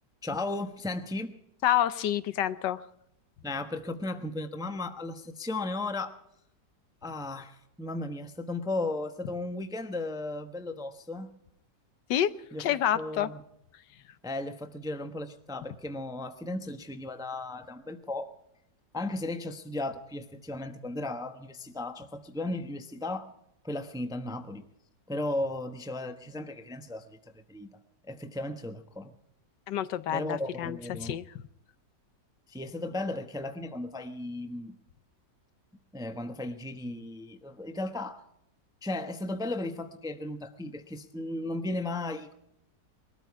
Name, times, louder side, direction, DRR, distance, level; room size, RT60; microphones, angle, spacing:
voice 1, 0.2-1.3 3.4-6.2 7.0-11.3 12.5-12.6 12.9-13.4 14.2-18.3 18.9-23.3 23.6-24.6 25.1-27.2 27.5-27.7 28.1-29.1 30.1-31.2 32.5-34.7 35.9-38.2 38.8-42.3, left 2 dB, 5° right, 8 dB, 0.7 m, -35 dB
voice 2, 1.6-2.9 12.1-12.3 12.6-13.3 29.7-31.2, left 11 dB, 80° left, 14 dB, 1.4 m, -28 dB
21.5 x 13.5 x 4.7 m, 0.76 s
omnidirectional pair, 1.9 m